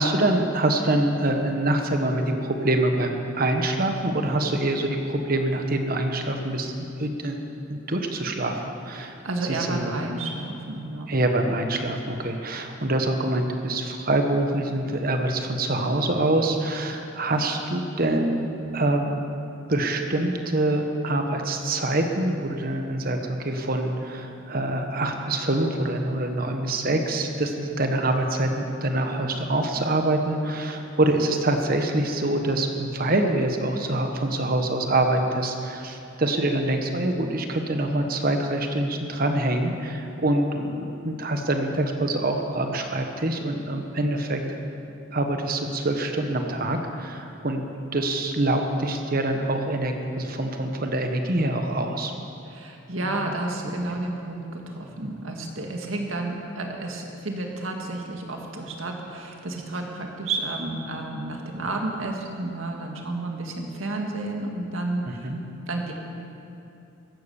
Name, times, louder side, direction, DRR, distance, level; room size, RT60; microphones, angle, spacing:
voice 1, 0.0-7.4 7.7-8.6 8.8-9.1 9.5-9.9 11.1-18.5 18.7-19.2 19.7-44.6 45.1-47.6 47.9-52.3 53.2-53.3 65.1-65.4, right 1 dB, 45° right, 4 dB, 1.2 m, -25 dB
voice 2, 9.0-11.1 52.4-65.4 65.7-65.9, right 2 dB, 85° right, 1 dB, 2.0 m, -31 dB
15.5 x 12.5 x 7.1 m, 2.7 s
head